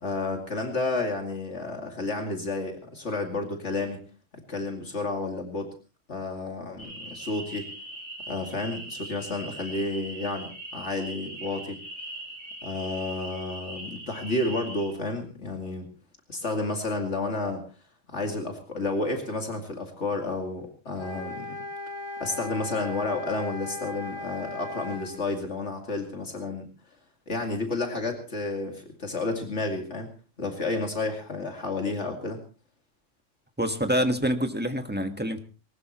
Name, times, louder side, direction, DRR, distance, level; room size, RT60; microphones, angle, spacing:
voice 1, 0.0-4.0 4.5-5.7 6.1-7.7 8.3-11.8 12.6-15.9 16.3-17.6 18.1-21.6 22.2-26.7 27.3-30.1 30.4-32.4, left 2 dB, 70° left, 3 dB, 2.7 m, -31 dB
sound 1, 6.8-14.9, right 1 dB, 90° left, 7.6 m, -40 dB
sound 2, 21.0-25.1, left 2 dB, 40° right, 7.3 m, -37 dB
voice 2, 33.6-35.4, equal, 10° right, 6 dB, 1.5 m, -26 dB
20.5 x 19.0 x 3.0 m, 0.34 s
omnidirectional pair, 1.3 m